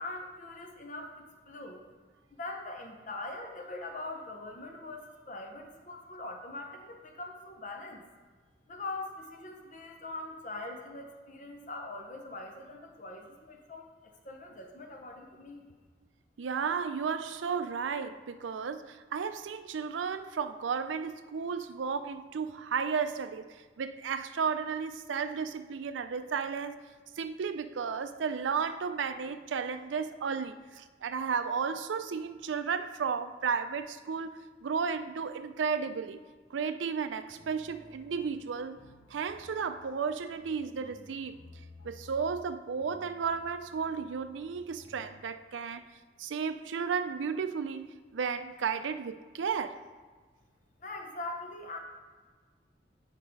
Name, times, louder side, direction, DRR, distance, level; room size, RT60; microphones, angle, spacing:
voice 1, 0.0-1.8 2.4-8.1 8.7-15.6 50.8-51.8, left 2 dB, 40° left, 2 dB, 0.7 m, -42 dB
voice 2, 16.4-26.8 27.2-36.2 36.5-38.8 39.1-41.4 41.8-45.8 46.2-49.8, right 6 dB, 90° right, 11 dB, 0.4 m, -33 dB
sound 1, 37.3-45.2, left 1 dB, 80° left, 1.7 m, -55 dB
8.3 x 5.1 x 4.6 m, 1.4 s
head